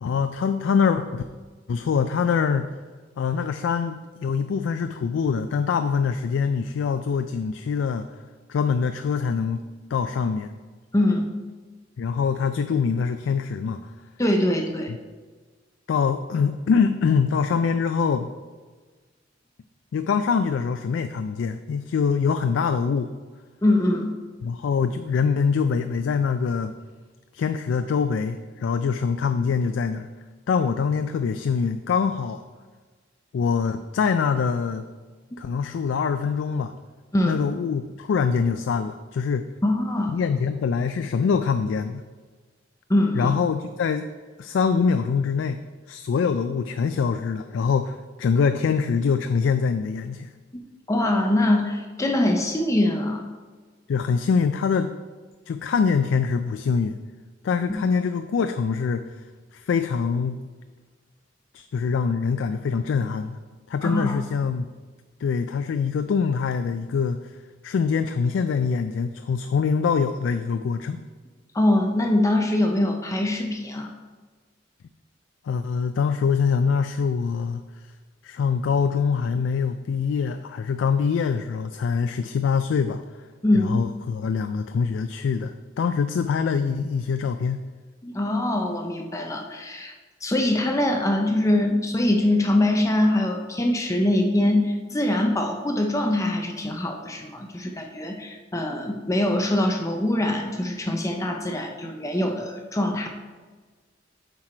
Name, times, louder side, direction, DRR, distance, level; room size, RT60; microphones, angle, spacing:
voice 1, 0.0-1.2 1.7-2.7 3.2-8.1 8.5-9.6 9.9-10.5 12.0-13.8 15.9-18.3 19.9-23.1 24.4-26.7 27.3-30.1 30.5-32.4 33.3-34.9 35.4-36.7 37.3-39.5 40.1-42.0 43.1-44.1 44.4-45.6 45.9-50.3 53.9-54.9 55.5-57.0 57.4-59.0 59.5-60.4 61.5-63.4 63.7-64.7 65.2-67.3 67.6-71.0 75.5-77.6 78.2-83.0 83.5-87.6, left 6 dB, 85° left, 9 dB, 0.3 m, -24 dB
voice 2, 10.9-11.3 14.2-14.9 23.6-24.1 37.1-37.4 39.6-40.1 42.9-43.3 50.9-53.2 57.7-57.8 63.8-64.2 71.5-73.9 83.4-83.8 88.0-89.9 90.2-103.1, left 1 dB, 15° left, 3 dB, 0.5 m, -23 dB
7.6 x 4.7 x 4.3 m, 1.4 s
head